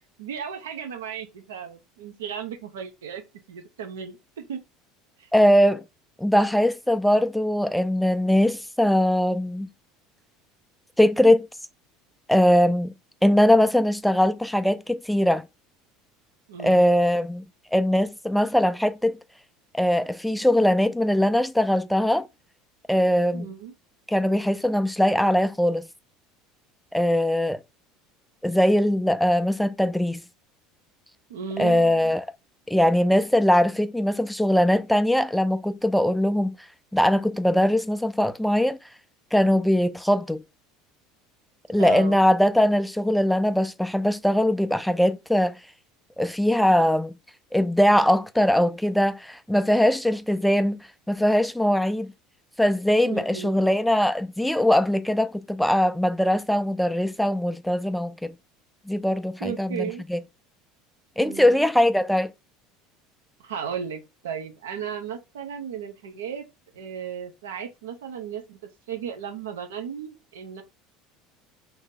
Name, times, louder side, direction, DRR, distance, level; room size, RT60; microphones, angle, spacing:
voice 1, 0.2-3.2 3.5-4.6 5.2-5.3 16.5-16.8 23.3-23.7 31.3-32.1 41.8-42.2 53.0-53.6 59.4-60.0 61.2-61.6 63.4-66.5 66.7-68.6 68.9-70.6, right 8 dB, 80° right, 0.6 m, -35 dB
voice 2, 5.3-5.8 6.2-9.7 11.0-11.5 12.3-12.9 13.2-15.4 16.6-17.4 17.7-19.2 19.7-22.2 22.9-23.5 24.1-25.9 26.9-27.6 28.4-30.2 31.6-32.3 32.7-36.5 36.9-38.8 39.3-40.4 41.7-45.6 46.2-47.1 47.5-52.1 52.6-58.3 58.9-60.2 61.2-62.3, left 1 dB, ahead, 0.4 m, -21 dB
2.8 x 2.7 x 3.7 m
hypercardioid pair, 75°, 0 cm